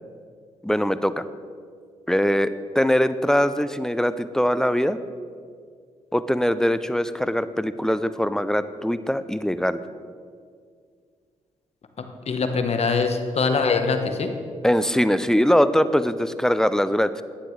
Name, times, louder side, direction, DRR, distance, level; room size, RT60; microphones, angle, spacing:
voice 1, 0.6-1.3 2.1-5.0 6.1-9.8 14.6-17.2, equal, 5° left, 13 dB, 0.4 m, -22 dB
voice 2, 12.3-14.4, left 4 dB, 50° left, 6 dB, 1.1 m, -23 dB
11.5 x 9.0 x 3.2 m, 2.1 s
supercardioid pair, 65°, 13 cm